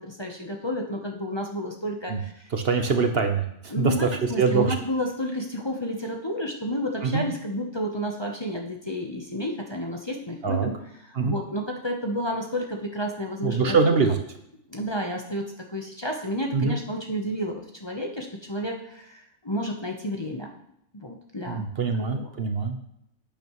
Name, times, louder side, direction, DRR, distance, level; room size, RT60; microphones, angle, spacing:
voice 1, 0.0-2.4 3.7-10.8 11.0-14.0 14.7-20.5 20.9-21.6 22.1-22.3, equal, 25° left, 0 dB, 0.9 m, -31 dB
voice 2, 2.5-4.1 4.4-4.8 7.0-7.2 10.4-10.7 11.1-11.3 13.4-14.2 16.5-16.7 21.5-22.8, right 4 dB, 55° right, 6 dB, 1.0 m, -23 dB
10.5 x 9.0 x 3.1 m, 0.78 s
omnidirectional pair, 1.3 m